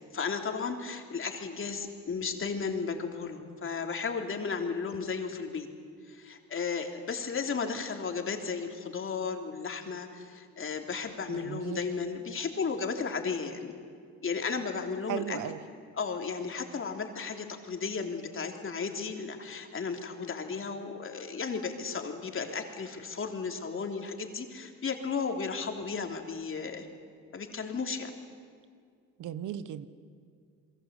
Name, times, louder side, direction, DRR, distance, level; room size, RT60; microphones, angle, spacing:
voice 1, 0.1-5.7 6.1-13.7 14.2-15.4 15.9-26.9 27.3-28.1, left 5 dB, 45° left, 4 dB, 3.3 m, -34 dB
voice 2, 11.3-11.8 15.1-15.6 29.2-29.9, right 10 dB, 80° right, 14 dB, 1.3 m, -36 dB
29.0 x 22.0 x 8.3 m, 2.2 s
cardioid pair, 90°, 30 cm